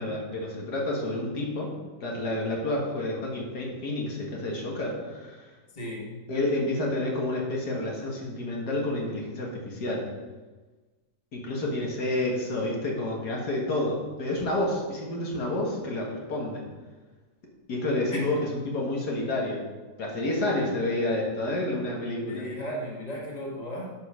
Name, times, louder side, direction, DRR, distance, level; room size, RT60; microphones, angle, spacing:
voice 1, 0.0-1.7 2.0-5.4 6.3-10.1 11.3-16.7 17.7-19.6 20.0-22.5, left 1 dB, 75° left, -2 dB, 2.2 m, -29 dB
voice 2, 5.7-6.2 18.1-18.2 22.3-23.9, equal, 25° left, -2 dB, 1.8 m, -35 dB
9.0 x 5.2 x 6.1 m, 1.3 s
omnidirectional pair, 1.7 m